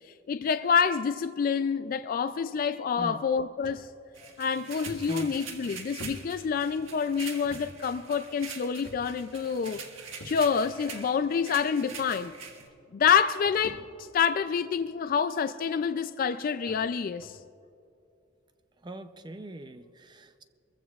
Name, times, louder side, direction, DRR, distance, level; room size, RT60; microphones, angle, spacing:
voice 1, 0.3-3.9 4.4-9.8 10.2-12.3 12.9-17.4, left 6 dB, 45° left, 0.3 m, -27 dB
sound 1, 3.6-3.8 4.3-4.4 4.9-6.9 7.4-7.7 7.9-8.1 8.8-9.3 10.2-10.7 11.6-11.7 12.7-12.8 13.0-14.2 14.6-14.9 15.7-15.8 16.3-16.4 16.7-16.8 17.2-17.4, left 1 dB, 70° left, 1.2 m, -46 dB
sound 2, 4.1-12.7, right 5 dB, 90° right, 1.6 m, -44 dB
voice 2, 18.8-20.4, right 2 dB, 20° right, 0.5 m, -40 dB
23.5 x 15.0 x 2.4 m
head